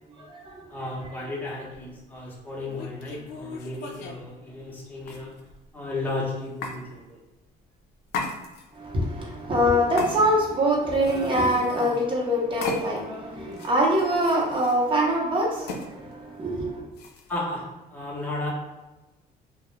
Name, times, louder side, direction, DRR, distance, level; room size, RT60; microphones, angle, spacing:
voice 1, 0.2-0.6 8.7-16.9, equal, 30° right, -3 dB, 0.8 m, -24 dB
voice 2, 0.7-5.4 5.7-7.2 17.3-18.5, left 2 dB, 10° left, -5 dB, 0.7 m, -34 dB
sound 1, 2.7-4.2 5.0-5.6 6.6-6.8 8.1-8.8 10.0-10.6 10.9-12.0 12.6-13.1 13.5-14.8 15.7-15.9 16.9-17.4, left 3 dB, 75° left, 0.4 m, -36 dB
2.2 x 2.0 x 3.1 m, 1.1 s
cardioid pair, 110°, 17 cm